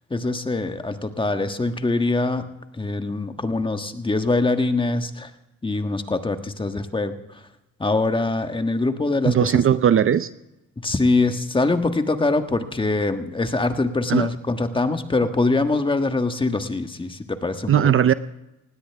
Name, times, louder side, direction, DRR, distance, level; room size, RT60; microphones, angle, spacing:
voice 1, 0.1-2.5 2.7-5.3 5.6-7.4 7.8-9.5 10.8-17.9, left 3 dB, 15° left, 7 dB, 1.5 m, -23 dB
voice 2, 9.2-10.3 14.1-14.3 17.7-18.1, right 9 dB, 45° right, 14 dB, 0.6 m, -18 dB
19.5 x 16.5 x 3.5 m, 0.93 s
cardioid pair, 90°, 30 cm